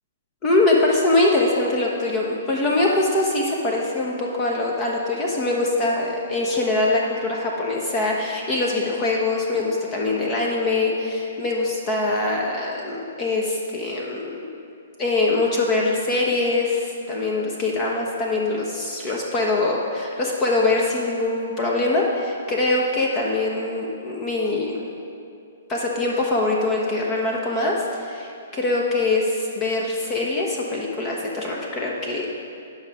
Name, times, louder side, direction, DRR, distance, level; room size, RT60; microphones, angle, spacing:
voice 1, 0.4-14.4 15.0-24.8 25.7-32.3, left 2 dB, 25° left, -2 dB, 1.0 m, -23 dB
10.0 x 5.8 x 4.9 m, 2.5 s
hypercardioid pair, 140°, 0 cm